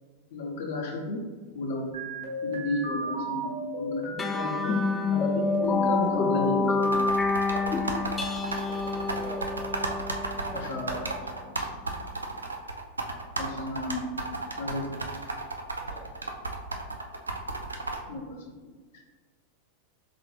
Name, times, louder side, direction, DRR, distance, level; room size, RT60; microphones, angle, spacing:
voice 1, 0.3-1.2 1.5-2.0 2.4-6.7 10.5-11.1 11.4-11.7 13.4-14.1 14.6-14.9 18.1-18.4 18.7-18.8, left 2 dB, 55° left, -1 dB, 0.9 m, -33 dB
sound 1, 1.9-4.9 5.4-7.0, equal, 55° right, 1.1 m, -35 dB
sound 2, 4.2-11.1, left 4 dB, 15° left, 0.3 m, -28 dB
sound 3, 6.8-18.0, right 3 dB, 75° right, 0.4 m, -33 dB
voice 2, 7.5-11.3 15.9-16.1, right 2 dB, 10° right, -3 dB, 0.9 m, -45 dB
4.0 x 3.7 x 3.2 m, 1.4 s
figure-of-eight pair, 90°, 0 cm